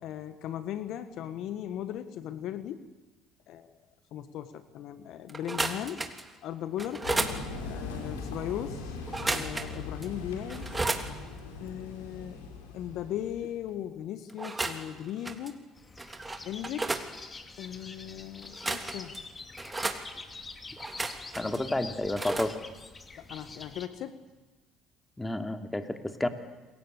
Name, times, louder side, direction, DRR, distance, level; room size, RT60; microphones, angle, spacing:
voice 1, 0.0-2.9 3.5-3.8 4.1-6.1 6.4-7.1 7.6-10.8 11.6-12.4 12.7-15.6 16.4-16.9 17.6-19.1 23.2-24.2, left 11 dB, 65° left, 12 dB, 1.5 m, -38 dB
sound 1, 5.3-6.3 6.8-7.4 9.1-9.8 10.0-10.1 10.5-11.1 14.3-14.9 15.2-15.5 16.0-17.1 18.4-19.2 19.6-20.0 20.8-21.6 22.2-22.5, right 2 dB, 20° right, 3.3 m, -33 dB
sound 2, 7.0-13.7, left 3 dB, 90° left, 4.7 m, -40 dB
sound 3, 15.8-23.9, left 3 dB, 30° left, 2.8 m, -46 dB
voice 2, 21.4-22.6 25.2-26.3, left 1 dB, 10° left, 6 dB, 3.0 m, -30 dB
28.5 x 22.0 x 8.4 m, 1.2 s
hypercardioid pair, 65°, 0 cm